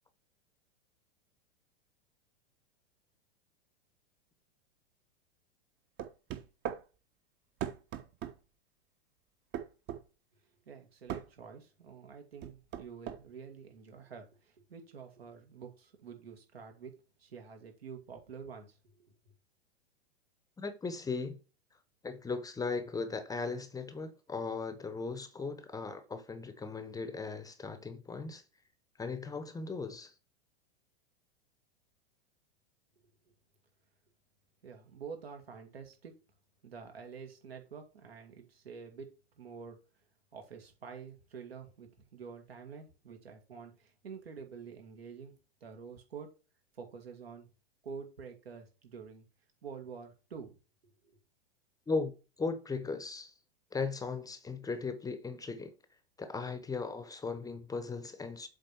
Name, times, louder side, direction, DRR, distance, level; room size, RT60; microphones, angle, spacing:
sound 1, 6.0-6.8 7.6-8.4 9.5-10.0 11.1-11.3 12.4-13.2, right 10 dB, 35° right, 1.1 m, -38 dB
voice 1, 10.7-19.1 34.6-36.1 36.6-39.8 40.3-45.3 45.6-46.3 46.7-47.5 47.8-49.3 49.6-50.6 50.8-51.2, right 6 dB, 75° right, 2.4 m, -48 dB
voice 2, 20.6-21.4 22.0-28.4 29.0-30.1 51.9-53.3 53.7-55.7 56.2-58.5, left 4 dB, 10° left, 0.8 m, -37 dB
7.7 x 4.2 x 4.6 m
figure-of-eight pair, 100°, 31 cm